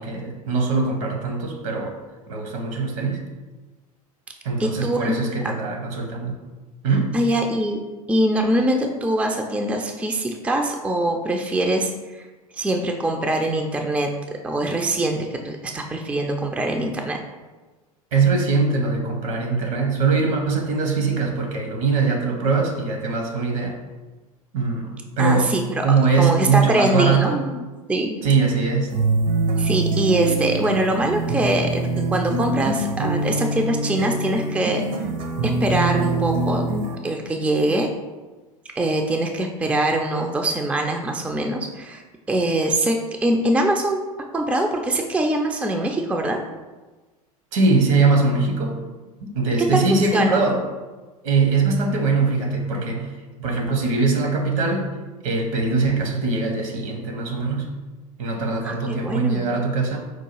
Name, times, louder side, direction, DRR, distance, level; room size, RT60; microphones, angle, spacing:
voice 1, 0.0-2.0 2.3-3.2 4.4-6.3 6.8-7.2 18.1-23.8 24.5-25.5 25.8-27.4 28.2-28.9 47.5-48.8 49.2-50.6 51.2-53.1 53.4-54.9 55.2-57.7 58.2-60.0, right 4 dB, 65° right, 2 dB, 1.0 m, -22 dB
voice 2, 4.6-5.1 7.1-7.8 8.1-12.3 12.5-14.1 14.4-17.2 25.2-28.2 29.6-34.8 35.6-36.7 37.0-37.9 38.8-42.0 42.3-43.0 43.2-44.0 44.3-46.4 49.7-50.4 58.6-59.4, right 1 dB, 5° right, 3 dB, 0.4 m, -23 dB
sound 1, 28.9-37.0, right 3 dB, 45° right, 0.7 m, -24 dB
4.7 x 2.3 x 4.5 m, 1.2 s
figure-of-eight pair, 75°, 19 cm